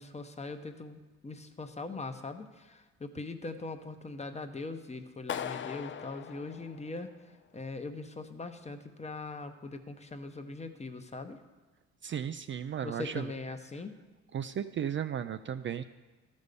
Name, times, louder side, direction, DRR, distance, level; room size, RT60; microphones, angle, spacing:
voice 1, 0.0-7.1 7.5-11.4 12.8-13.9, left 3 dB, 20° left, 7 dB, 0.8 m, -41 dB
Clapping, 5.3-7.3, left 9 dB, 40° left, 0.5 m, -40 dB
voice 2, 12.0-13.3 14.3-15.8, right 9 dB, 40° right, 10 dB, 0.4 m, -35 dB
12.5 x 5.3 x 6.7 m, 1.2 s
cardioid pair, 90°, 30 cm